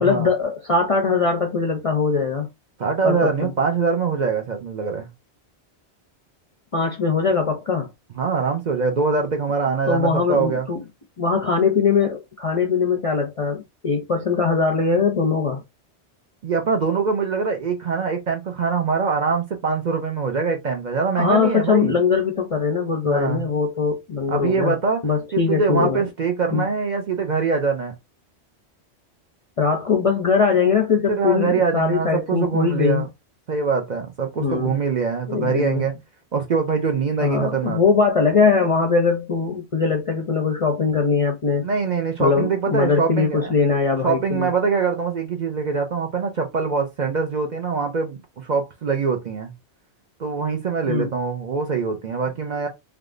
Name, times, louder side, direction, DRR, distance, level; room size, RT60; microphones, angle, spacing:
voice 1, 0.0-2.5 3.0-3.5 6.7-7.9 9.9-10.8 11.2-15.6 21.2-24.7 25.0-26.0 26.5-26.7 29.6-33.0 34.4-34.8 35.3-35.8 37.2-41.6 42.2-44.5 50.9-51.1, left 5 dB, 45° left, 0.4 m, -21 dB
voice 2, 2.8-5.1 8.2-10.7 16.4-21.9 23.1-23.4 24.3-25.0 25.3-27.9 31.1-33.1 33.5-35.9 36.3-37.8 41.6-43.5 44.0-49.5 50.2-52.7, right 5 dB, 55° right, 0.6 m, -23 dB
3.5 x 2.3 x 2.5 m
omnidirectional pair, 1.1 m